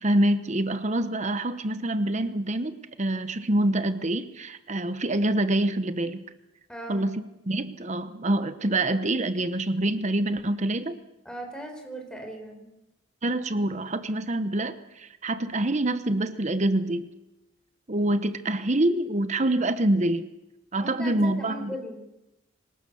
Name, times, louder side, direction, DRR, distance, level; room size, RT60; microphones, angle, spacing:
voice 1, 0.0-6.2 6.9-11.0 13.2-17.1 17.9-20.3 20.7-21.7, right 1 dB, 35° right, 11 dB, 1.0 m, -26 dB
voice 2, 6.7-7.1 11.2-12.7 20.8-22.0, equal, 5° left, 3 dB, 4.6 m, -38 dB
25.5 x 18.5 x 7.0 m, 0.93 s
head